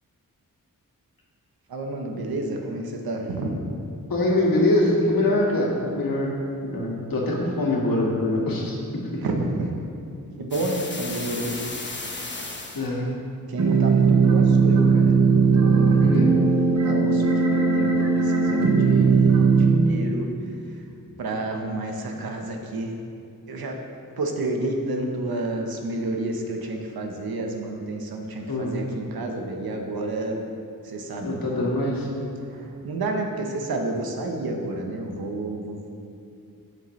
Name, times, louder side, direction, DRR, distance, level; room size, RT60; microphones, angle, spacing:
voice 1, 1.7-3.8 9.2-9.7 10.4-11.6 13.5-16.1 16.8-20.3 21.2-22.9 23.5-23.8 24.2-30.4 30.8-31.7 32.5-35.9, right 2 dB, 90° right, 2 dB, 1.0 m, -30 dB
voice 2, 4.1-6.3 6.6-8.8 9.1-9.2 12.7-13.1 16.0-16.3 28.5-28.7 31.2-32.1, left 1 dB, 75° left, -3 dB, 1.8 m, -23 dB
sound 1, 10.5-12.9, left 2 dB, 30° left, 1.0 m, -34 dB
sound 2, 13.6-19.8, right 4 dB, 50° right, 0.9 m, -18 dB
11.0 x 6.5 x 3.2 m, 2.5 s
wide cardioid pair, 75°, 35 cm